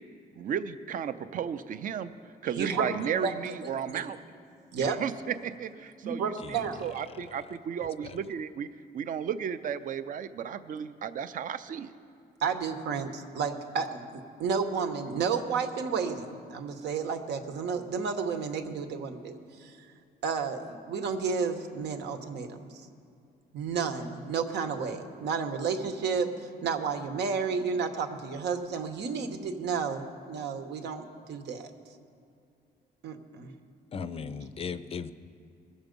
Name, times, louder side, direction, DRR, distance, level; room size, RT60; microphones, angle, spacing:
voice 1, 0.4-2.1 2.4-4.2 4.8-8.7 8.9-11.9, right 8 dB, 50° right, 12 dB, 0.5 m, -34 dB
voice 2, 2.5-2.9 3.2-3.3 3.9-4.1 4.7-5.0 6.0-6.8 12.4-19.7 20.2-22.9 23.5-26.3 26.6-31.7 33.0-33.5, right 5 dB, 85° right, 6 dB, 1.1 m, -31 dB
voice 3, 7.1-7.4 8.0-8.2 33.9-35.1, left 6 dB, 35° left, 13 dB, 0.4 m, -38 dB
20.5 x 7.2 x 5.2 m, 2.4 s
cardioid pair, 135°, 17 cm